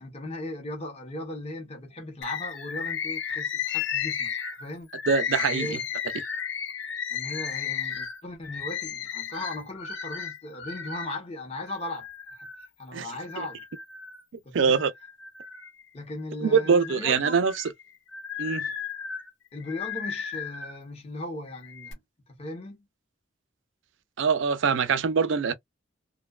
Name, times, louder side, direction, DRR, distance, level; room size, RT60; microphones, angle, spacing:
voice 1, 0.0-4.3 4.6-4.9 5.5-5.8 7.1-12.5 12.8-13.6 14.4-14.8 15.9-17.4 19.5-22.0 22.3-22.9, left 2 dB, 30° left, 0.7 m, -37 dB
Bird, 2.2-11.1 11.7-12.7 13.2-14.2 14.6-16.0 16.5-20.8 21.5-21.9, left 7 dB, 65° left, 0.6 m, -34 dB
voice 2, 5.1-5.8 12.9-13.1 13.4-13.5 14.5-14.9 16.4-17.6 18.4-18.6 24.2-25.5, right 5 dB, 65° right, 0.4 m, -23 dB
2.6 x 2.2 x 2.2 m
head